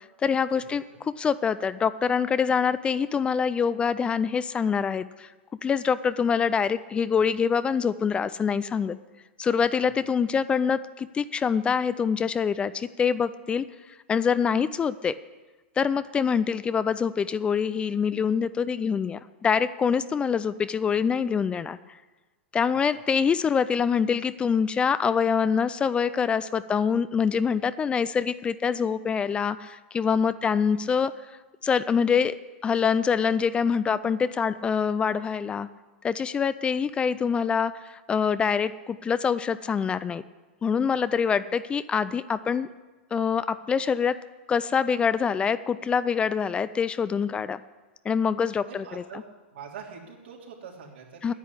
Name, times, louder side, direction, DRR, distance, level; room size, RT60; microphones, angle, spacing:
voice 1, 0.0-5.3 5.6-9.0 9.4-13.7 14.1-15.2 15.8-21.8 22.5-31.1 31.6-32.3 32.6-35.7 36.0-40.2 40.6-42.7 43.1-44.2 44.5-47.6 48.0-49.2 51.2-51.3, left 6 dB, 15° left, 15 dB, 0.4 m, -25 dB
voice 2, 48.6-49.2 49.5-51.3, right 6 dB, 80° right, -1 dB, 3.4 m, -44 dB
10.5 x 8.5 x 9.9 m, 1.2 s
hypercardioid pair, 130°, 6 cm